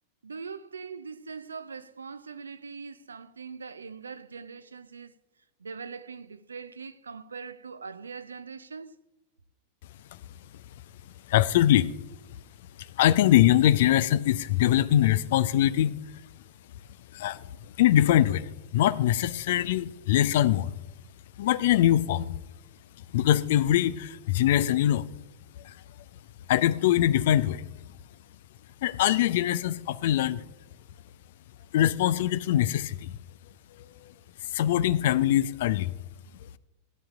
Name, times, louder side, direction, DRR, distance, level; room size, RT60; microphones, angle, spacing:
voice 1, 0.2-5.1 5.6-9.0, right 5 dB, 75° right, 0.5 m, -41 dB
voice 2, 11.3-11.9 13.0-16.0 17.1-17.4 17.8-20.7 21.4-22.3 23.1-25.1 25.6-25.7 26.5-27.7 28.8-30.4 31.7-33.1 34.5-35.9, left 12 dB, 55° left, 0.4 m, -23 dB
16.0 x 10.0 x 2.4 m
figure-of-eight pair, 90°, 0 cm